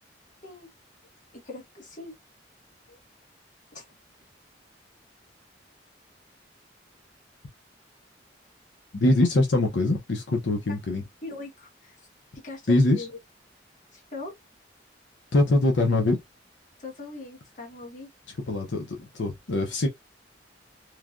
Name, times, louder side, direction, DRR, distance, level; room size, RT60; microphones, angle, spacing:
voice 1, 1.3-2.2 2.9-3.0 3.7-3.8 11.2-12.0 12.4-13.1 13.9-14.3 16.8-18.1, left 3 dB, 45° left, 1.2 m, -40 dB
voice 2, 8.9-11.0 12.7-13.1 15.3-16.2 18.5-19.9, left 2 dB, 80° left, 0.7 m, -23 dB
3.1 x 2.2 x 2.5 m
head